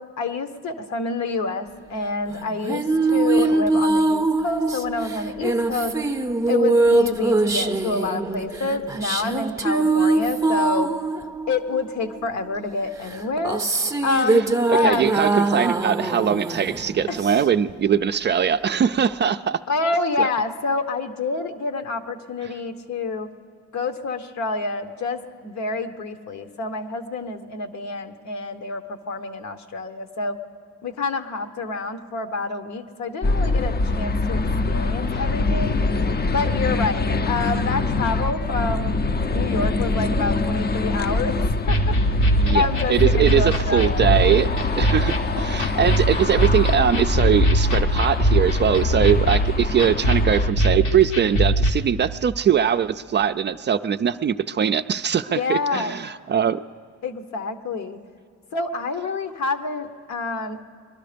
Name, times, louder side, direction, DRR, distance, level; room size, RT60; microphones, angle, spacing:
voice 1, 0.0-2.8 3.1-5.9 6.5-10.9 11.5-13.6 14.0-15.1 17.1-17.2 19.7-23.3 23.7-30.4 30.8-34.4 34.7-35.8 36.3-39.0 39.3-41.4 41.7-41.8 42.5-44.0 55.3-56.0 57.0-58.0 58.5-60.6, left 3 dB, 65° left, 8 dB, 1.1 m, -27 dB
sound 1, 2.3-12.2 13.0-17.7, right 3 dB, 10° right, 0.7 m, -22 dB
voice 2, 14.7-19.6 20.2-20.3 42.4-56.6, right 8 dB, 35° right, 10 dB, 0.4 m, -21 dB
sound 2, 33.2-50.5, left 3 dB, 30° left, 0.6 m, -24 dB
sound 3, 41.7-51.7, right 1 dB, 85° left, 1.6 m, -22 dB
22.0 x 12.0 x 5.1 m, 2.2 s
cardioid pair, 90°, 30 cm